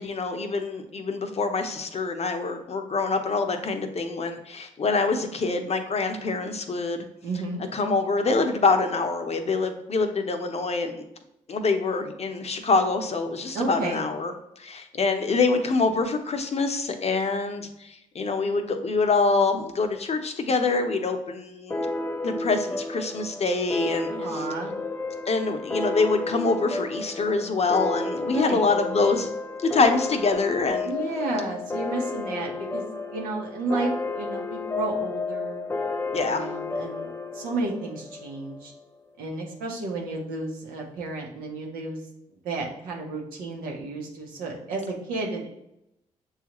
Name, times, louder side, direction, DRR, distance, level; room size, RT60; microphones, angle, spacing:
voice 1, 0.0-7.1 7.7-11.1 11.5-21.9 22.2-24.5 25.3-29.3 29.6-30.9 36.1-36.5, left 4 dB, 45° left, 6 dB, 0.7 m, -25 dB
voice 2, 7.2-7.6 13.5-14.0 24.1-24.7 28.2-28.6 30.8-32.8 33.1-35.7 36.3-37.1 37.3-38.7 39.2-42.0 42.4-45.5, right 3 dB, 90° right, -1 dB, 0.9 m, -32 dB
sound 1, 21.7-38.8, left 3 dB, 15° left, 0.4 m, -32 dB
6.6 x 2.4 x 2.9 m, 0.85 s
supercardioid pair, 50°, 14 cm